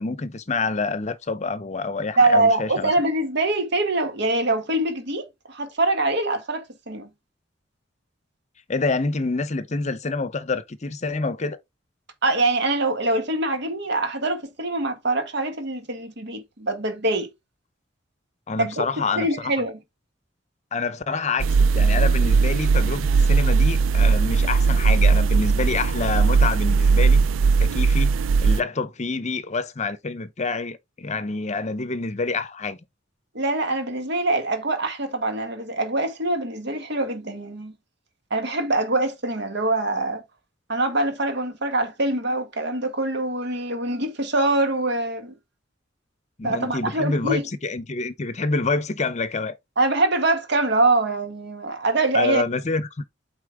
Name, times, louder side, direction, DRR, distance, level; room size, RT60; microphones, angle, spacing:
voice 1, 0.0-2.9 8.7-11.6 18.5-19.6 20.7-27.3 27.6-32.8 46.4-49.6 52.1-53.0, left 3 dB, 35° left, 0.7 m, -27 dB
voice 2, 2.2-7.1 12.2-17.3 18.6-18.8 19.2-19.8 33.3-37.7 38.3-40.2 40.7-45.3 46.4-47.4 49.8-52.4, right 2 dB, 60° right, 1.7 m, -24 dB
sound 1, 21.4-28.6, right 4 dB, 85° right, 0.4 m, -18 dB
8.3 x 4.3 x 3.5 m
head